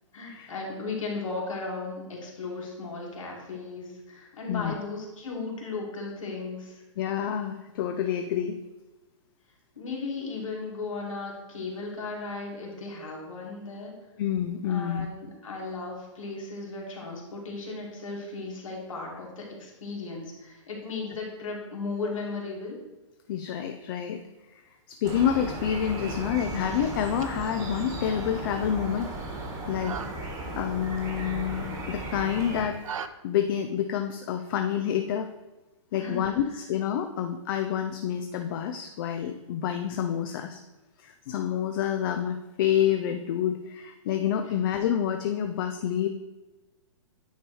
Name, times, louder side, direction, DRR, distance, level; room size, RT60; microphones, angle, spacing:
voice 1, 0.1-6.8 9.7-13.9 14.7-22.8 35.9-36.2 44.4-44.5, left 3 dB, 90° left, -2 dB, 2.1 m, -36 dB
voice 2, 7.0-8.6 14.2-15.1 23.3-24.2 24.5-29.1 29.7-30.0 30.6-32.8 33.2-35.3 35.9-40.6 41.0-46.1, left 9 dB, 45° left, 6 dB, 0.4 m, -28 dB
sound 1, 25.0-32.6, right 2 dB, 20° right, 1.3 m, -36 dB
sound 2, 26.9-33.1, right 7 dB, 90° right, 0.5 m, -43 dB
9.2 x 3.1 x 4.7 m, 1.1 s
hypercardioid pair, 150°, 16 cm